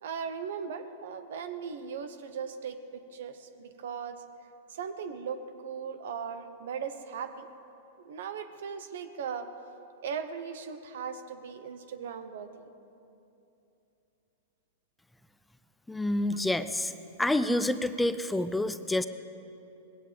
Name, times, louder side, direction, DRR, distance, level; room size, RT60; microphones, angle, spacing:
voice 1, 0.0-4.2 4.7-7.5 8.0-9.5 10.0-12.7 16.3-16.4, right 6 dB, 70° right, 10 dB, 1.0 m, -38 dB
voice 2, 15.9-16.9 17.2-19.1, left 1 dB, 5° left, 11 dB, 0.5 m, -28 dB
19.5 x 16.5 x 3.4 m, 2.8 s
hypercardioid pair, 110°, 0 cm